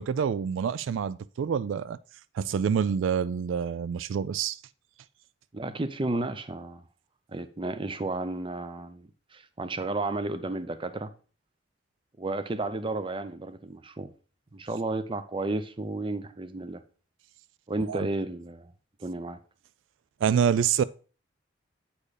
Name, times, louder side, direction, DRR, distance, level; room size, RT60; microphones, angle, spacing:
voice 1, 0.0-2.0 2.3-4.6 17.9-18.1 20.2-20.8, right 7 dB, 80° right, 0.3 m, -27 dB
voice 2, 5.5-6.8 7.3-11.1 12.2-14.1 14.5-16.8 17.7-18.7 19.0-19.4, right 2 dB, 25° right, 0.6 m, -32 dB
8.5 x 4.4 x 4.9 m
head